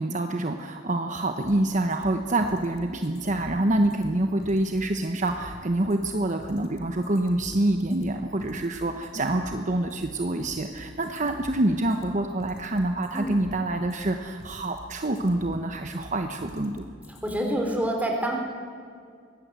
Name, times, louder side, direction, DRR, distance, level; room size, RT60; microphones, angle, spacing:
voice 1, 0.0-16.8, right 1 dB, 40° right, 5 dB, 1.0 m, -26 dB
sound 1, 1.4-17.4, equal, 60° left, 3.3 m, -46 dB
voice 2, 17.2-18.4, right 1 dB, 10° right, 1 dB, 3.9 m, -26 dB
23.0 x 17.5 x 8.2 m, 2.2 s
head